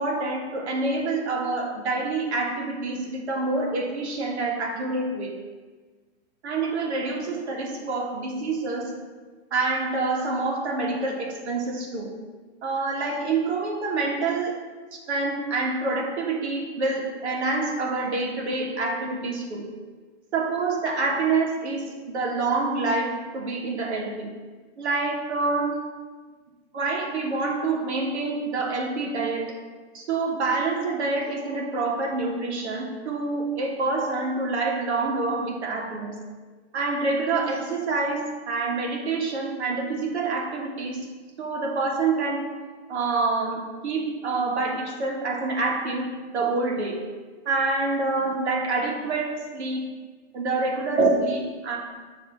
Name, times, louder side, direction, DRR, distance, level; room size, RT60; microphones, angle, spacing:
voice 1, 0.0-5.3 6.4-8.9 9.5-12.1 12.6-14.6 14.9-19.7 20.3-24.3 24.8-25.8 26.7-29.5 29.9-36.2 36.7-41.0 41.4-42.4 42.9-47.0 47.4-49.8 50.3-51.8, right 3 dB, 65° right, 0 dB, 1.6 m, -27 dB
7.9 x 3.2 x 5.6 m, 1.4 s
hypercardioid pair, 175°, 36 cm